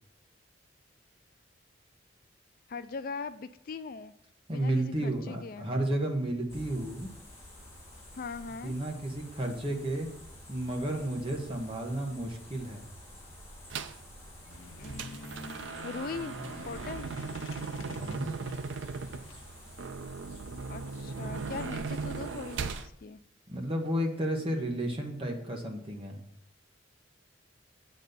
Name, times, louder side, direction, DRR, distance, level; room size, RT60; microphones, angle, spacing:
voice 1, 2.7-4.1 4.5-5.7 8.1-8.8 14.8-16.4 16.6-17.1 20.7-23.2, left 4 dB, 50° left, 12 dB, 0.4 m, -40 dB
voice 2, 4.5-7.1 8.6-10.1 10.5-12.9 17.8-18.3 23.5-26.2, right 1 dB, 30° right, 2 dB, 1.3 m, -32 dB
sound 1, 6.5-22.8, equal, 15° left, 2.5 m, -50 dB
sound 2, 13.7-14.0 14.5-22.9, right 4 dB, 75° right, 0.5 m, -38 dB
sound 3, 14.4-19.4, left 2 dB, 85° left, 0.7 m, -48 dB
8.4 x 4.2 x 6.7 m, 0.72 s
head